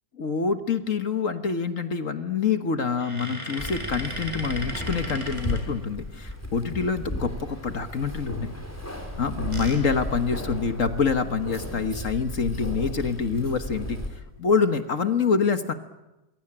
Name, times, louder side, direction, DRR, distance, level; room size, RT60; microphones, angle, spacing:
voice 1, 0.2-8.5 9.2-14.0 14.4-15.7, left 5 dB, 45° left, 8 dB, 1.6 m, -26 dB
sound 1, 2.9-6.4 9.1-11.0 11.5-11.6 11.9-12.0 13.6-13.9 14.5-15.0, equal, 15° right, 6.2 m, -37 dB
Keys jangling, 3.6-14.1, left 1 dB, 5° left, 4.4 m, -35 dB
27.5 x 22.5 x 8.8 m, 1.0 s
omnidirectional pair, 2.0 m